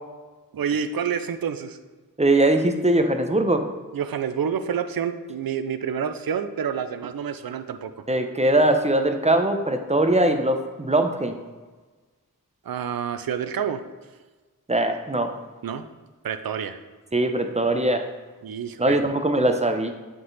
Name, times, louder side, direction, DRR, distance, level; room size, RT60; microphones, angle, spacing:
voice 1, 0.5-1.8 3.9-7.9 12.7-13.8 15.6-15.9 16.2-16.8 18.4-19.0, right 7 dB, 75° right, 9 dB, 0.5 m, -28 dB
voice 2, 2.2-3.6 8.1-11.3 14.7-15.3 17.1-18.0 18.8-19.9, right 1 dB, 20° right, 6 dB, 0.7 m, -21 dB
7.6 x 3.9 x 4.0 m, 1.3 s
wide cardioid pair, 45°, 35 cm